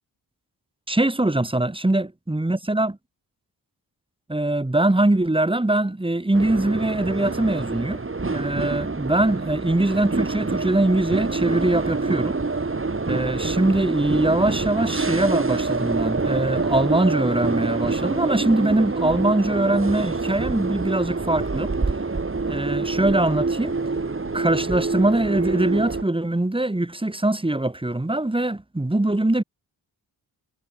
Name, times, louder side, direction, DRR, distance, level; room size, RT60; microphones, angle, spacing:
voice 1, 0.9-3.0 4.3-8.0 8.3-12.4 13.1-21.7 22.5-23.7 24.3-29.4, right 1 dB, 15° right, 3.3 m, -22 dB
sound 1, 6.3-26.0, right 3 dB, 30° right, 7.8 m, -26 dB
wide cardioid pair, 90°, 40 cm